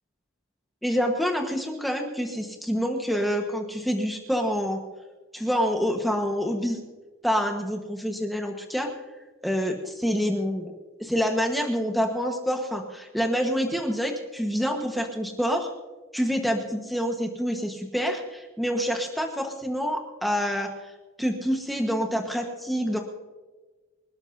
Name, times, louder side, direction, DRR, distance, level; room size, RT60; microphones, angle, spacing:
voice 1, 0.8-4.8 5.3-6.8 7.2-8.9 9.4-10.7 11.0-15.7 16.1-20.9 21.2-23.0, equal, ahead, 2 dB, 1.3 m, -27 dB
26.0 x 13.0 x 2.7 m, 1.3 s
head